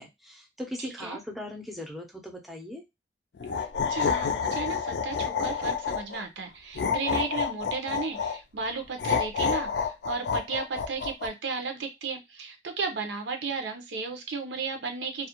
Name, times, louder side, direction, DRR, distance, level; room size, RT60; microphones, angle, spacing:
voice 1, 0.0-2.8, left 1 dB, ahead, 1 dB, 0.5 m, -39 dB
voice 2, 0.8-1.2 3.6-15.3, right 4 dB, 80° right, 5 dB, 0.6 m, -34 dB
sound 1, 3.4-6.2 6.7-8.4 9.0-11.3, left 6 dB, 70° left, 0.4 m, -29 dB
2.3 x 2.1 x 2.8 m, 0.22 s
head